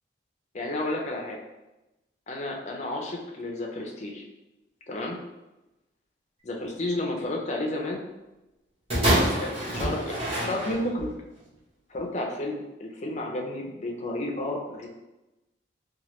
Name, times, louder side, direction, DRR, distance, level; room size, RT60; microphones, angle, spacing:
voice 1, 0.5-1.4 2.3-4.2 4.9-5.2 6.4-8.0 9.3-11.1 11.9-14.9, left 1 dB, 35° left, 0 dB, 0.4 m, -32 dB
sound 1, 8.9-11.1 11.9-12.0, right 1 dB, 30° right, 1.0 m, -26 dB
3.0 x 2.3 x 2.9 m, 1.0 s
head